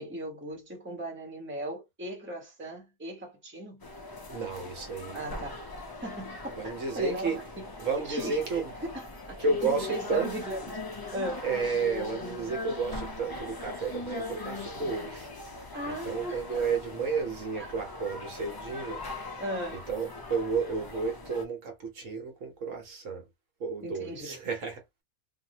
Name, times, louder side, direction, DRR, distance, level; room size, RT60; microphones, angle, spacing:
voice 1, 0.0-3.9 5.1-7.6 8.1-11.4 15.7-16.6 17.6-17.7 19.4-19.9 23.8-24.4, right 1 dB, 10° right, 1.1 m, -38 dB
sound 1, 3.8-21.4, left 2 dB, 30° left, 0.4 m, -40 dB
voice 2, 4.3-5.3 6.5-7.4 7.8-8.7 9.4-10.3 11.4-15.3 15.6-19.0 19.7-23.2 23.6-25.0, right 4 dB, 65° right, 1.3 m, -32 dB
2.7 x 2.6 x 2.9 m
omnidirectional pair, 1.5 m